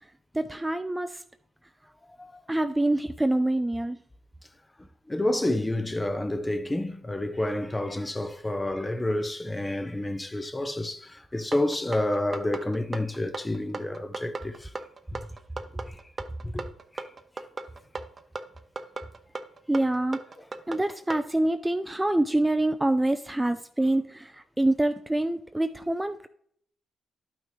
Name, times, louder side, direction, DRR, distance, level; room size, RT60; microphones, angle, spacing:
voice 1, 0.3-1.2 2.5-4.0 19.7-20.2 20.7-26.3, right 1 dB, 10° right, 0.5 m, -26 dB
voice 2, 5.1-14.7 15.1-15.2 15.9-16.0 16.4-16.6 16.9-17.1, left 1 dB, 15° left, 0.7 m, -29 dB
sound 1, 11.5-21.3, right 3 dB, 35° right, 0.8 m, -37 dB
11.5 x 6.0 x 3.2 m
cardioid pair, 70°, 0 cm